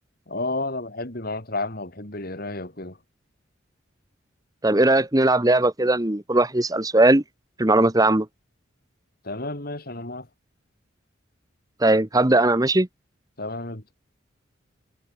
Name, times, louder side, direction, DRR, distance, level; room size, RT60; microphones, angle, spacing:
voice 1, 0.3-3.0 9.2-10.3 13.4-13.8, left 2 dB, 50° left, 3.6 m, -31 dB
voice 2, 4.6-7.2 7.6-8.3 11.8-12.9, right 2 dB, 20° right, 1.2 m, -19 dB
head